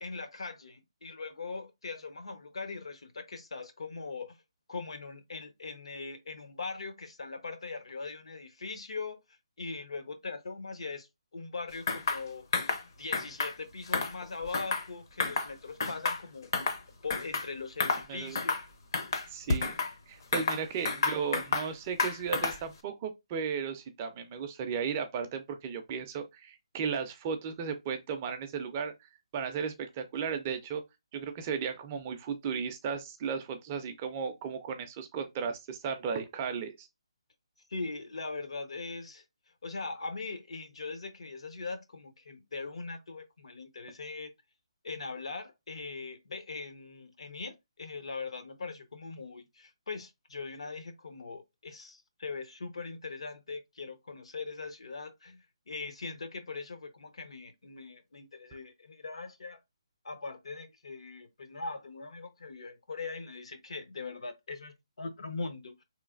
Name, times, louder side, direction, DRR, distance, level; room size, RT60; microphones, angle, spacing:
voice 1, 0.0-4.4 4.7-12.6 13.0-16.5 17.0-18.6 37.7-39.2 39.6-44.3 44.8-59.6 60.0-65.8, left 4 dB, 75° left, 0.7 m, -41 dB
sound 1, 11.9-12.2 12.5-12.8 13.1-13.5 13.9-14.9 15.2-15.5 15.8-16.8 17.1-17.5 17.8-18.1 18.4-18.7 18.9-19.9 20.3-21.7 22.0-22.7, left 4 dB, 40° left, 0.5 m, -30 dB
voice 2, 19.3-19.8 20.1-28.9 29.3-30.8 31.1-36.9, right 6 dB, 20° right, 0.3 m, -35 dB
3.7 x 3.1 x 2.4 m
hypercardioid pair, 170°, 3 cm